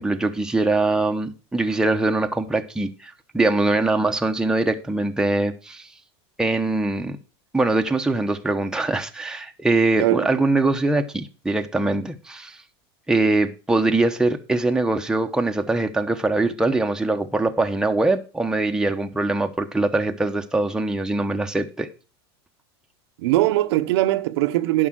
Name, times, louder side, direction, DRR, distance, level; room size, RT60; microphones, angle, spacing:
voice 1, 0.0-5.9 6.4-7.2 7.5-12.6 13.1-21.9, right 2 dB, 5° right, 1.0 m, -22 dB
voice 2, 23.2-24.9, right 16 dB, 75° right, 0.9 m, -20 dB
11.0 x 5.5 x 6.2 m
supercardioid pair, 120°, 14 cm